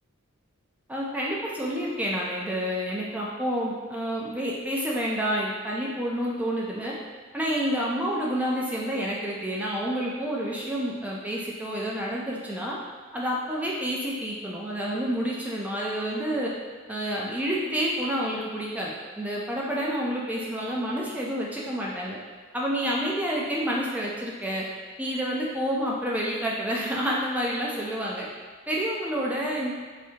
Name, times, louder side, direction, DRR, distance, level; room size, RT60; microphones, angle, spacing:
voice 1, 0.9-6.9 7.3-12.8 13.1-16.5 16.9-22.2 22.5-24.7 25.0-28.3 28.7-29.7, equal, 5° right, -4 dB, 0.3 m, -29 dB
3.4 x 2.7 x 2.8 m, 1.5 s
head